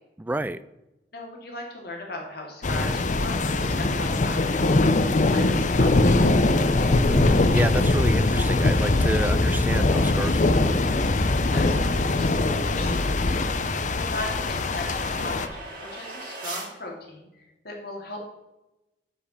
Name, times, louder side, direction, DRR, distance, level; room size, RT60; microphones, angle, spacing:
voice 1, 0.2-0.6 7.1-10.7, right 1 dB, 10° right, 15 dB, 0.3 m, -29 dB
voice 2, 1.1-6.4 11.4-13.5 14.0-18.2, left 2 dB, 60° left, 0 dB, 2.7 m, -38 dB
sound 1, 2.6-15.5, left 2 dB, 45° left, 0.7 m, -22 dB
sound 2, 9.0-16.7, right 2 dB, 50° right, 3.9 m, -44 dB
8.2 x 5.6 x 7.2 m, 0.97 s
head